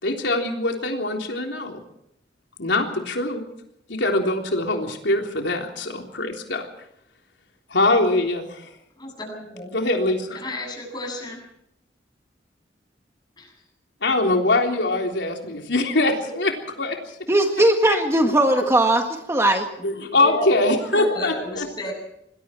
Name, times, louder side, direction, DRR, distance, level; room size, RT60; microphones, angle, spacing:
voice 1, 0.0-1.8 2.6-3.4 3.9-6.7 7.7-8.7 9.7-10.4 14.0-17.0 17.5-18.0 19.8-21.7, left 2 dB, 80° left, 2 dB, 3.5 m, -23 dB
voice 2, 9.0-9.7 10.3-11.4 13.4-13.5 16.2-16.3 19.8-21.9, left 1 dB, 25° left, 2 dB, 7.9 m, -33 dB
voice 3, 17.3-19.0 19.3-19.7, right 1 dB, 15° right, 4 dB, 1.7 m, -18 dB
27.0 x 21.0 x 4.5 m, 0.77 s
head